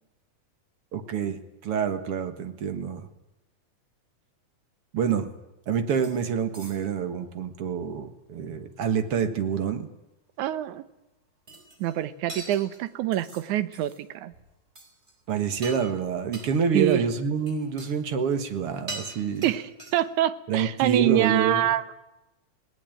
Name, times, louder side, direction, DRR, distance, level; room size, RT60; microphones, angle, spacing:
voice 1, 0.9-3.1 4.9-5.3 5.7-9.9 15.3-19.5 20.5-21.7, right 6 dB, 55° right, 10 dB, 2.2 m, -27 dB
sound 1, 6.0-6.3 6.5-7.1 11.5-12.0 12.3-13.5 13.7-14.0 14.3-14.5 14.8-15.1 15.5-16.0 16.3-16.5 17.4-17.9 18.2-18.6 18.9-20.2, right 2 dB, 20° right, 5.0 m, -42 dB
voice 2, 10.4-10.8 11.8-14.3 16.7-17.0 19.4-21.8, right 13 dB, 80° right, 14 dB, 2.4 m, -25 dB
19.5 x 18.5 x 9.1 m, 0.94 s
omnidirectional pair, 3.5 m